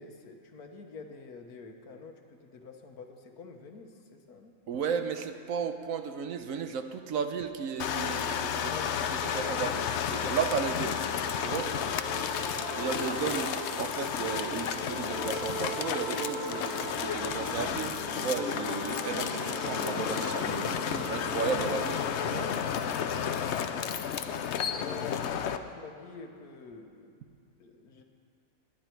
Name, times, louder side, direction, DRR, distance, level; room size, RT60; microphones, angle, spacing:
voice 1, 0.0-4.5 8.7-9.6 11.7-13.2 23.2-24.2 24.7-27.1 27.6-28.0, left 4 dB, 85° left, 5 dB, 1.6 m, -48 dB
voice 2, 4.7-8.7 9.3-9.9 10.1-11.0 11.4-11.7 12.8-22.5, right 6 dB, 65° right, 8 dB, 1.1 m, -34 dB
sound 1, 7.8-25.6, left 8 dB, 60° left, 0.8 m, -32 dB
sound 2, 10.7-24.3 24.5-24.6 24.9-25.0, equal, 90° right, 3.5 m, -40 dB
19.5 x 10.5 x 4.5 m, 2.4 s
omnidirectional pair, 1.6 m